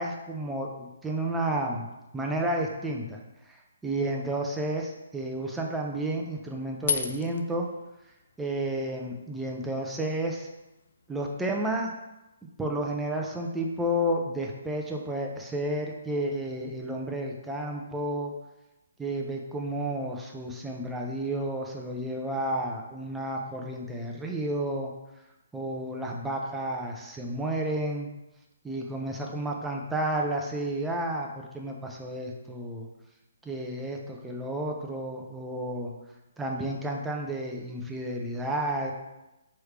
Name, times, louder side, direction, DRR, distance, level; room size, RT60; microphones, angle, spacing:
voice 1, 0.0-1.9 2.1-3.2 3.5-7.7 8.4-10.5 11.1-11.9 12.6-18.3 19.0-24.9 25.5-28.1 28.6-32.9 33.4-35.9 36.4-38.9, right 1 dB, 5° right, 0 dB, 0.5 m, -31 dB
sound 1, 6.6-11.8, left 6 dB, 60° left, 0.4 m, -38 dB
4.6 x 3.2 x 3.2 m, 0.97 s
hypercardioid pair, 145°, 0 cm